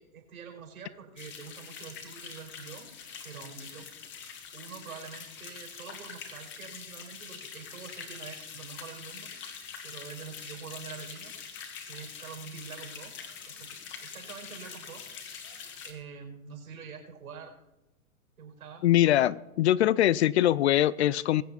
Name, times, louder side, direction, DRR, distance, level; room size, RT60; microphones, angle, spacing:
voice 1, 0.0-2.9 3.2-3.9 4.5-9.3 9.8-11.3 11.8-13.1 13.5-13.7 14.0-15.1 15.8-17.5 18.4-18.8, right 6 dB, 80° right, 2 dB, 4.9 m, -45 dB
sound 1, 1.2-15.9, left 6 dB, 25° left, 1.8 m, -44 dB
voice 2, 18.8-21.4, left 13 dB, 50° left, 21 dB, 0.4 m, -23 dB
21.0 x 8.0 x 4.2 m, 0.94 s
hypercardioid pair, 125°, 44 cm